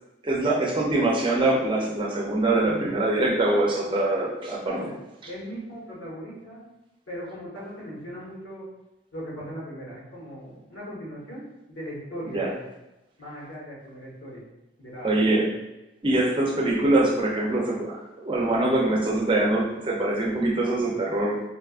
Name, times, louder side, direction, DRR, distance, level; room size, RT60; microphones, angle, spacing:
voice 1, 0.2-4.8 12.3-12.5 15.0-15.5 16.0-21.4, right 2 dB, 25° right, -2 dB, 0.4 m, -23 dB
voice 2, 4.6-6.7 7.1-8.7 9.1-12.6 13.2-14.4 14.8-15.5, equal, 90° left, -6 dB, 1.2 m, -38 dB
4.1 x 2.2 x 2.4 m, 0.95 s
head